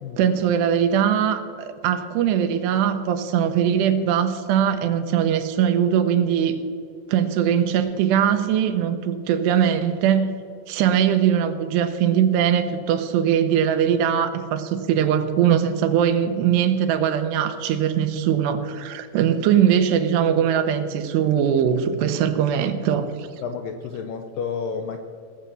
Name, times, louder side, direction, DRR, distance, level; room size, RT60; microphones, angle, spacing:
voice 1, 0.2-6.6 7.1-10.3 10.7-23.3, right 9 dB, 90° right, 8 dB, 3.0 m, -21 dB
voice 2, 23.4-25.0, left 6 dB, 80° left, 6 dB, 2.0 m, -30 dB
19.0 x 7.5 x 6.8 m, 2.4 s
omnidirectional pair, 4.7 m